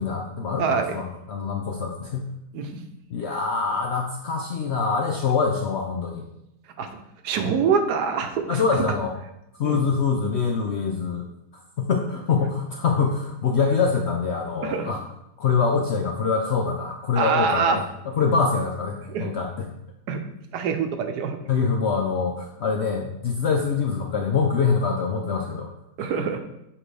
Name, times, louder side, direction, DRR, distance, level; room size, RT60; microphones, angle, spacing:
voice 1, 0.0-2.3 3.1-6.2 8.5-9.1 9.6-11.2 11.8-15.0 15.4-17.8 18.1-19.7 21.5-25.7, left 5 dB, 65° left, 1 dB, 0.6 m, -24 dB
voice 2, 0.6-1.0 2.5-2.7 6.8-6.9 7.2-8.6 9.6-9.8 14.6-14.9 17.2-17.8 19.1-19.3 20.1-20.3 20.5-21.4 26.0-26.4, right 6 dB, 80° right, 7 dB, 1.3 m, -24 dB
7.3 x 4.8 x 3.3 m, 0.85 s
omnidirectional pair, 1.7 m